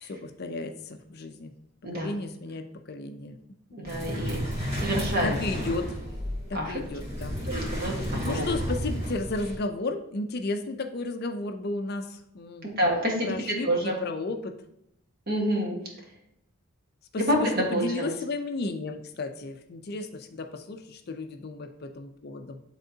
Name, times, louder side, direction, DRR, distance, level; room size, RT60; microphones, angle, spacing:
voice 1, 0.0-1.5 1.9-3.4 3.8-4.0 4.6-4.7 5.2-6.0 6.5-7.4 7.9-12.7 13.2-14.6 17.1-22.6, left 2 dB, 45° left, 6 dB, 0.4 m, -33 dB
voice 2, 3.7-4.5 4.7-5.4 6.5-6.7 7.4-7.9 8.2-8.4 12.6-13.3 13.6-13.9 15.3-15.8 17.2-18.1, equal, 40° right, -1 dB, 1.4 m, -27 dB
sound 1, 3.9-9.5, equal, 25° right, 2.2 m, -32 dB
10.0 x 3.6 x 2.8 m, 0.76 s
head